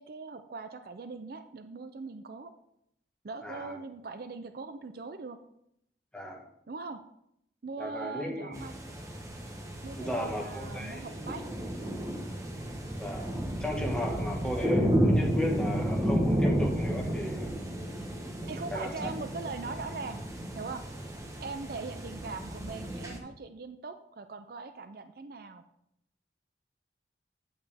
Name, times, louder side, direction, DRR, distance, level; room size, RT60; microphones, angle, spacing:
voice 1, 0.0-2.5 3.2-5.4 6.7-7.0 7.6-8.7 9.8-11.5 18.5-20.2 20.5-20.8 21.4-25.6, right 4 dB, 55° right, 9 dB, 0.5 m, -41 dB
voice 2, 3.4-3.8 6.1-6.4 7.8-8.7 10.0-11.3 13.0-17.5 18.7-19.1, left 1 dB, 5° left, -2 dB, 1.5 m, -35 dB
sound 1, 8.5-23.2, equal, 15° right, 1.0 m, -32 dB
8.7 x 8.1 x 3.5 m, 0.75 s
head